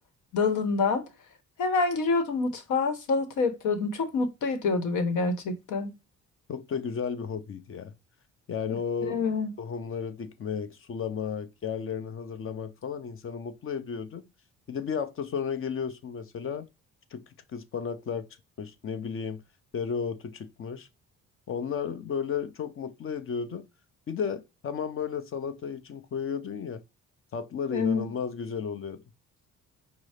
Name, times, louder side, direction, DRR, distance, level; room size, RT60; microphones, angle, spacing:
voice 1, 0.3-1.0 1.6-5.9 9.0-9.5 27.7-28.1, left 4 dB, 85° left, 1.0 m, -27 dB
voice 2, 6.5-7.9 8.5-9.2 9.6-14.3 14.7-16.7 17.1-17.2 17.5-18.3 18.6-19.4 19.7-20.9 21.5-23.6 24.1-26.8 27.3-29.0, left 6 dB, 45° left, 0.7 m, -33 dB
5.3 x 2.0 x 4.8 m
cardioid pair, 90°, 30 cm